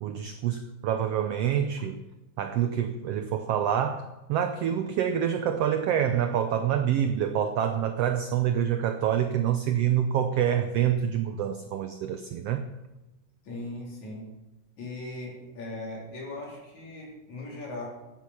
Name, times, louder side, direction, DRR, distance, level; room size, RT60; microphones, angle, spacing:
voice 1, 0.0-2.0 2.4-12.7, right 9 dB, 85° right, 1.3 m, -27 dB
voice 2, 13.4-14.3 14.8-17.9, left 2 dB, 60° left, 5.1 m, -39 dB
14.0 x 9.7 x 5.8 m
omnidirectional pair, 3.7 m